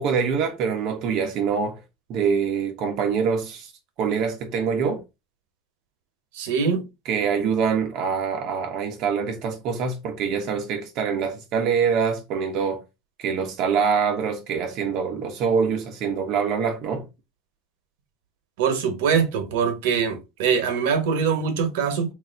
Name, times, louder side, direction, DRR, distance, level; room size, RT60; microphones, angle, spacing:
voice 1, 0.0-1.8 2.1-3.7 4.0-5.0 7.1-12.8 13.2-17.0, right 6 dB, 50° right, 0.7 m, -24 dB
voice 2, 6.3-6.8 18.6-22.1, right 6 dB, 80° right, 1.0 m, -23 dB
3.1 x 2.5 x 4.4 m
supercardioid pair, 150°, 0 cm